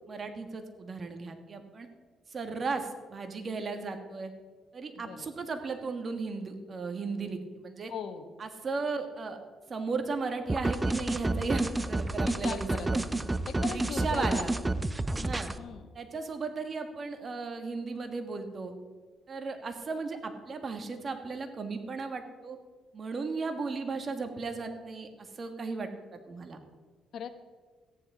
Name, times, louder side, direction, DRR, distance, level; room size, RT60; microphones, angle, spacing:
voice 1, 0.1-1.9 2.3-4.3 4.7-7.9 8.4-9.4 9.7-13.0 13.7-14.5 15.2-15.5 15.9-18.7 19.3-22.6 22.9-26.6, right 4 dB, 40° right, 7 dB, 1.8 m, -36 dB
voice 2, 4.9-5.3 7.9-8.3 12.2-12.9 13.5-14.5 15.6-15.9 27.1-27.3, left 7 dB, 70° left, 10 dB, 1.1 m, -39 dB
sound 1, 10.5-15.6, right 2 dB, 15° right, 0.6 m, -30 dB
14.0 x 10.0 x 4.9 m, 1.4 s
cardioid pair, 90°, 0 cm